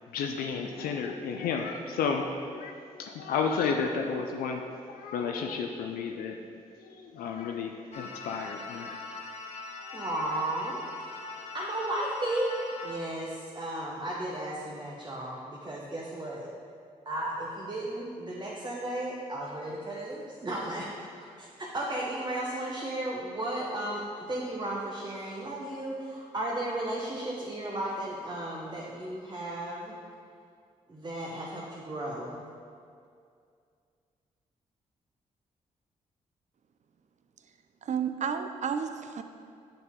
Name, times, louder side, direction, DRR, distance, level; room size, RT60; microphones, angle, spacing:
voice 1, 0.1-6.4 6.8-9.0 9.8-10.0, left 5 dB, 80° left, 3 dB, 0.4 m, -32 dB
sound 1, 7.9-13.0, left 3 dB, 45° left, 0.8 m, -41 dB
voice 2, 9.9-10.8 11.1-12.5 12.8-16.5 17.1-24.0 24.3-29.9 30.9-32.4, right 1 dB, 30° right, -4 dB, 0.9 m, -34 dB
voice 3, 37.8-39.2, right 7 dB, 50° right, 8 dB, 0.4 m, -31 dB
6.8 x 4.2 x 3.6 m, 2.3 s
supercardioid pair, 45°, 15 cm